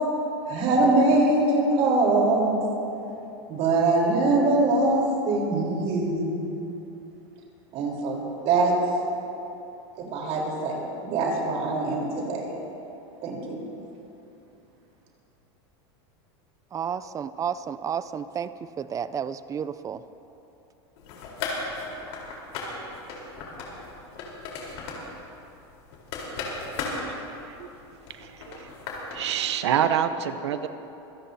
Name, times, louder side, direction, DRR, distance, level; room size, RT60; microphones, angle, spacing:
voice 1, 0.5-2.6 3.5-6.5 7.7-8.2 8.4-8.8 10.0-12.5 13.2-13.6, right 2 dB, 50° right, 4.1 m, -23 dB
voice 2, 16.7-18.5 18.8-20.0, right 8 dB, 25° right, 0.5 m, -31 dB
sound 1, 21.0-29.3, left 3 dB, 65° left, 4.1 m, -36 dB
voice 3, 28.2-28.7 29.1-30.7, right 9 dB, 90° right, 0.9 m, -26 dB
25.5 x 16.5 x 2.8 m
supercardioid pair, 120°, 14 cm